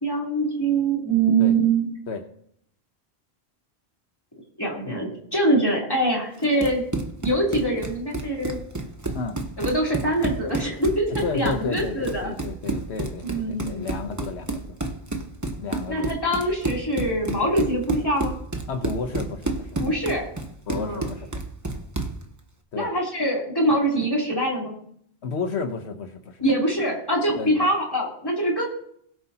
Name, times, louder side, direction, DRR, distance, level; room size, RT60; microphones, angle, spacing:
voice 1, 0.0-1.9 4.6-6.9 7.2-8.6 9.6-12.3 13.2-13.9 15.9-18.3 19.8-20.2 20.7-21.1 22.7-24.7 26.4-28.7, right 2 dB, 20° left, -4 dB, 3.3 m, -24 dB
Run, 6.4-22.2, right 2 dB, 15° right, 1.0 m, -30 dB
voice 2, 11.2-14.7 15.6-16.1 18.7-19.8 20.7-21.3 22.7-22.9 25.2-26.4 27.3-27.5, left 4 dB, 80° left, 6 dB, 1.2 m, -32 dB
20.5 x 8.2 x 2.9 m, 0.67 s
omnidirectional pair, 1.1 m